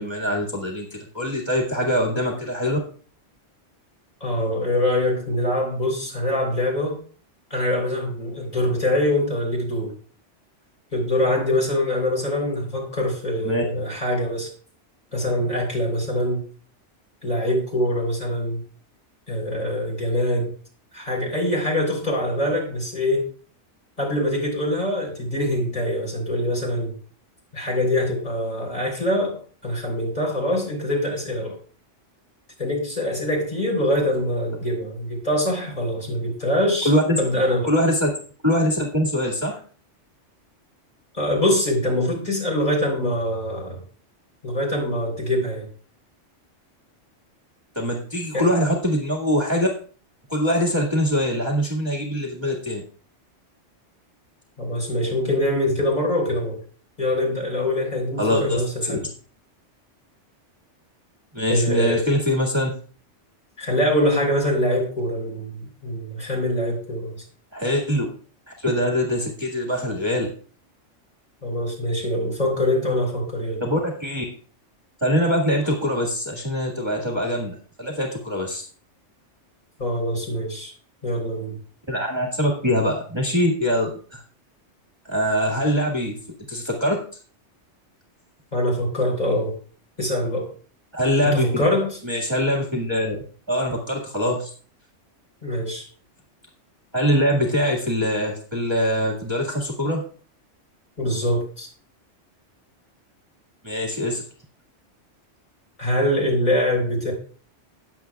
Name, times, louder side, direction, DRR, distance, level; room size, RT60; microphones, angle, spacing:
voice 1, 0.0-2.8 13.4-13.6 36.8-37.2 37.6-38.1 38.4-39.6 47.8-49.7 50.3-52.8 58.2-58.6 58.9-59.0 61.3-62.7 67.5-68.1 68.5-70.3 73.6-74.2 75.0-78.6 81.9-84.2 85.1-86.1 86.5-87.0 90.9-91.6 92.0-93.2 93.5-94.5 96.9-100.0 103.6-104.2, equal, 20° right, -2 dB, 1.9 m, -23 dB
voice 2, 4.2-7.0 7.5-9.9 10.9-14.5 15.1-16.4 17.2-18.6 19.3-20.5 20.9-23.3 24.0-26.9 27.5-31.6 32.6-36.9 37.2-37.7 41.1-43.8 44.4-45.7 48.3-48.5 54.6-56.6 57.0-59.0 61.5-62.0 63.6-67.2 71.4-73.6 79.8-80.7 81.0-81.6 88.5-89.5 90.0-90.5 91.2-92.0 95.4-95.9 101.0-101.7 105.8-107.1, left 1 dB, 35° left, -2 dB, 4.0 m, -24 dB
19.0 x 7.6 x 2.4 m, 0.42 s
omnidirectional pair, 1.2 m